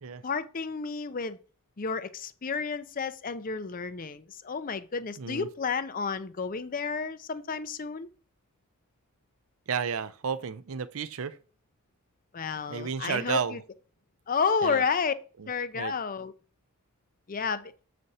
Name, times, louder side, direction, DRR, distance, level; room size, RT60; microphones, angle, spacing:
voice 1, 0.2-1.4 1.8-8.1 12.3-13.6 14.3-15.1 15.5-16.3 17.3-17.7, left 5 dB, 40° left, 0.5 m, -31 dB
voice 2, 5.2-5.5 9.7-11.4 12.7-13.6 14.6-14.8 15.4-15.5 15.7-15.9, right 6 dB, 70° right, 0.5 m, -32 dB
7.7 x 5.1 x 4.1 m
head